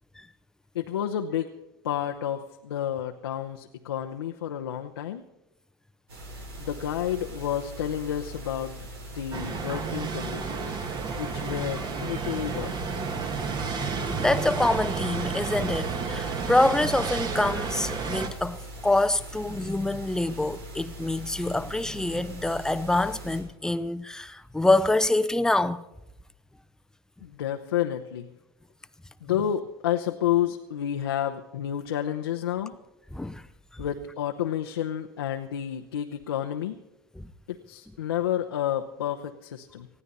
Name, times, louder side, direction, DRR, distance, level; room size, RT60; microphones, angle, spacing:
voice 1, 0.7-1.5 1.8-5.2 6.6-10.8 11.1-12.7 27.2-28.3 29.2-32.7 33.8-36.8 37.5-39.9, left 10 dB, 85° left, 0.9 m, -30 dB
sound 1, 6.1-23.4, right 1 dB, 85° right, 5.4 m, -42 dB
sound 2, 9.3-18.3, right 5 dB, 35° right, 1.9 m, -31 dB
voice 2, 14.2-25.8 33.1-33.4 33.7-33.8 37.2-37.3, left 2 dB, 5° left, 0.7 m, -26 dB
20.0 x 15.0 x 4.1 m
hypercardioid pair, 95°, 12 cm